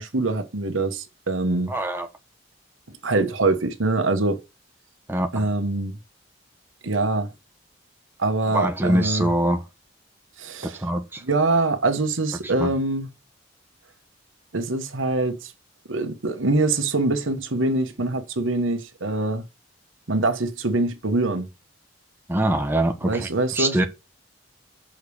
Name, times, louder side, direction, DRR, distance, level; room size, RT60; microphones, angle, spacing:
voice 1, 0.0-1.7 3.0-4.4 5.3-6.0 6.8-7.3 8.2-9.3 10.4-10.8 11.2-13.1 14.5-15.5 15.9-19.5 20.1-21.5 23.0-23.9, right 2 dB, 85° right, 1.3 m, -24 dB
voice 2, 1.7-2.1 5.1-5.5 8.5-9.6 10.6-11.2 12.4-12.7 22.3-23.3 23.5-23.8, right 1 dB, 10° right, 0.9 m, -23 dB
6.3 x 5.3 x 6.4 m
head